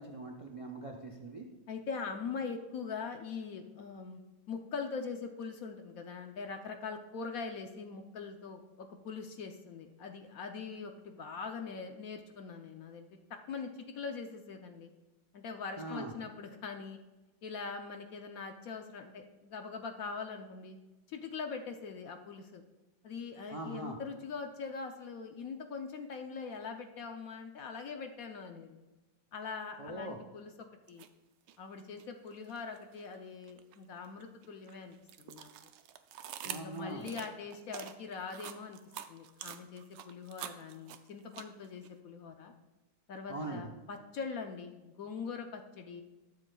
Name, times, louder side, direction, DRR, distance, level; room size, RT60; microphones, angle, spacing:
voice 1, 0.0-1.4 15.8-16.1 23.5-24.0 29.8-30.2 36.4-37.0 43.3-43.6, right 2 dB, 55° right, 3 dB, 0.3 m, -41 dB
voice 2, 1.7-4.2 4.5-13.1 13.5-14.9 15.3-17.0 17.4-20.8 21.1-22.6 23.0-28.8 29.3-30.5 30.9-31.0 31.6-35.5 36.4-38.8 39.1-42.5 43.1-46.0, left 5 dB, 65° left, 5 dB, 0.9 m, -42 dB
sound 1, 30.9-31.1 31.5-33.0 33.4-41.9, right 10 dB, 70° right, 1.2 m, -46 dB
20.5 x 7.2 x 2.3 m, 1.2 s
omnidirectional pair, 2.1 m